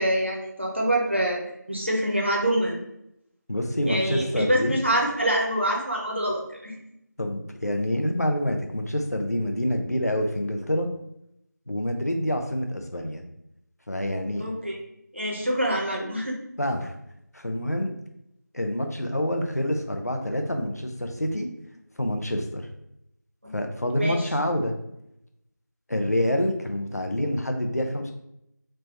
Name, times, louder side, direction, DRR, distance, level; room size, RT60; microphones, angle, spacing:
voice 1, 0.0-1.4 1.7-2.7 3.9-6.7 14.4-14.8 15.1-16.4 23.4-23.5 24.0-24.2, right 1 dB, 40° right, -2 dB, 0.7 m, -25 dB
voice 2, 3.5-4.7 7.2-10.9 11.7-13.2 13.9-14.5 16.6-16.9 17.3-17.9 18.5-21.5 22.0-22.6 23.5-24.7 25.9-28.1, left 1 dB, 55° left, 4 dB, 0.5 m, -27 dB
3.3 x 2.1 x 3.9 m, 0.80 s
figure-of-eight pair, 180°, 10 cm